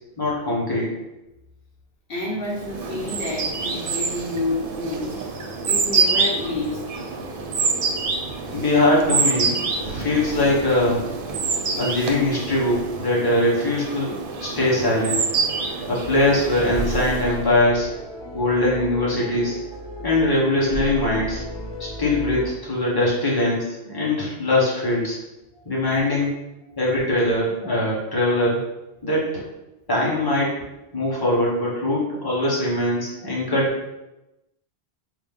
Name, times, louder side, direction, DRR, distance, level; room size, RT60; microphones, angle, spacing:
voice 1, 0.2-0.9 8.5-11.0 11.8-15.2 15.9-17.9 18.3-19.6 20.0-21.4 22.0-25.2 25.6-26.3 26.8-28.7 29.0-29.4 29.9-30.5 30.9-33.9, left 1 dB, 20° left, -5 dB, 1.0 m, -22 dB
voice 2, 2.1-5.2 5.6-6.8 8.7-8.8 25.5-25.6 26.7-26.8, left 2 dB, 65° left, -5 dB, 0.9 m, -29 dB
sound 1, 2.5-17.5, right 4 dB, 65° right, 0.7 m, -26 dB
sound 2, 16.0-22.5, equal, 35° left, 0.4 m, -33 dB
4.9 x 2.0 x 3.6 m, 0.95 s
omnidirectional pair, 1.1 m